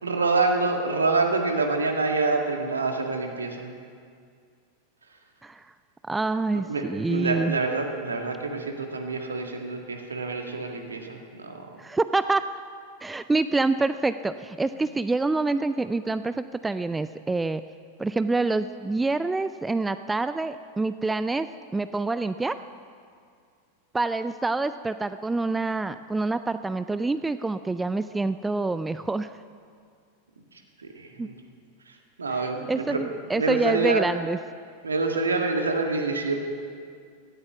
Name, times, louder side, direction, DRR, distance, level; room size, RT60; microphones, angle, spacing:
voice 1, 0.0-3.7 6.5-11.7 31.0-31.3 32.2-33.0 33.4-34.1 34.8-36.3, right 3 dB, 75° right, 3 dB, 1.8 m, -26 dB
voice 2, 6.0-7.6 11.8-12.6 13.0-17.6 18.0-22.6 23.9-29.3 31.2-31.3 32.3-34.4, right 3 dB, 10° right, 12 dB, 0.4 m, -26 dB
18.0 x 13.0 x 5.8 m, 2.1 s
figure-of-eight pair, 90°, 0 cm